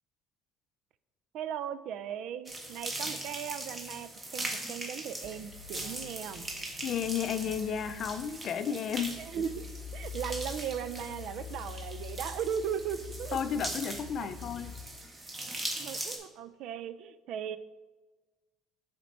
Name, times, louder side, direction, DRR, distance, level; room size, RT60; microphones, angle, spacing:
voice 1, 1.3-6.5 9.2-13.4 14.2-14.3 15.8-17.6, right 8 dB, 60° right, 13 dB, 0.3 m, -37 dB
sound 1, 2.5-16.2, right 2 dB, 20° right, 1.1 m, -41 dB
sound 2, 5.2-14.9, left 6 dB, 65° left, 0.8 m, -46 dB
voice 2, 6.8-9.2 13.3-14.7, left 8 dB, 45° left, 10 dB, 0.4 m, -32 dB
7.1 x 4.3 x 4.3 m, 1.3 s
cardioid pair, 145°, 0 cm